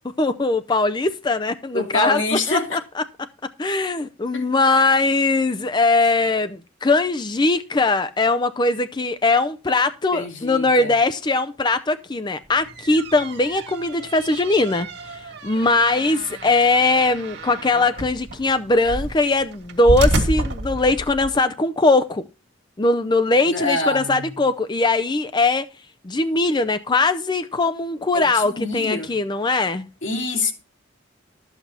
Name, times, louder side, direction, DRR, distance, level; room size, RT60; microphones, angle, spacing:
voice 1, 0.2-2.2 2.5-3.0 3.6-22.2 22.8-25.6 26.0-29.9, left 3 dB, 25° left, 0.5 m, -20 dB
voice 2, 1.7-2.8 4.3-4.4 10.1-10.9 23.4-24.3 28.1-29.2 30.0-30.5, left 2 dB, 70° left, 2.7 m, -26 dB
sound 1, 12.5-21.4, right 1 dB, 60° right, 2.1 m, -29 dB
13.0 x 8.1 x 4.2 m
head